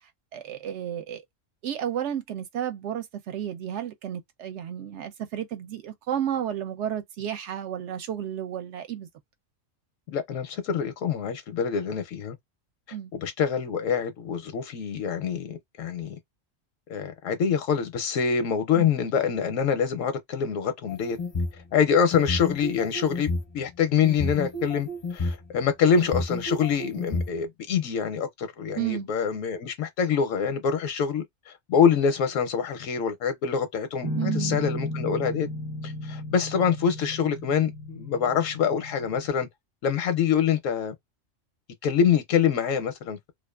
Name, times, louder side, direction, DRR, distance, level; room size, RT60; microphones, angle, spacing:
voice 1, 0.3-1.2 1.6-9.1 12.9-13.1 18.8-18.9 28.7-29.1 34.2-34.6, right 10 dB, 70° right, 0.8 m, -32 dB
voice 2, 10.1-12.4 13.1-16.1 16.9-21.2 21.7-35.5 35.8-39.5 39.8-40.9 41.8-43.3, left 7 dB, 85° left, 1.0 m, -25 dB
sound 1, 20.9-21.6 22.1-23.5 24.0-25.3 26.0-27.3, left 2 dB, 40° left, 0.4 m, -30 dB
Guitar, 34.0-39.3, left 1 dB, 35° right, 0.8 m, -34 dB
2.4 x 2.4 x 2.3 m
omnidirectional pair, 1.3 m